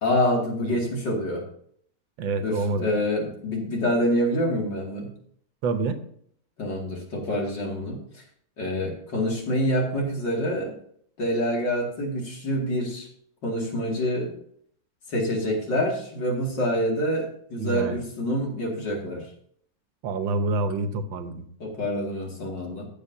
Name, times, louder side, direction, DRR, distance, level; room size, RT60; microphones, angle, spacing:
voice 1, 0.0-1.4 2.4-5.1 6.6-8.0 8.6-10.7 11.2-13.1 13.4-14.3 15.1-19.3 21.6-22.9, equal, 65° left, -1 dB, 3.0 m, -26 dB
voice 2, 2.2-2.9 5.6-6.0 17.6-18.0 20.0-21.4, right 3 dB, 80° right, 9 dB, 1.6 m, -27 dB
15.5 x 7.2 x 2.7 m, 0.64 s
omnidirectional pair, 2.0 m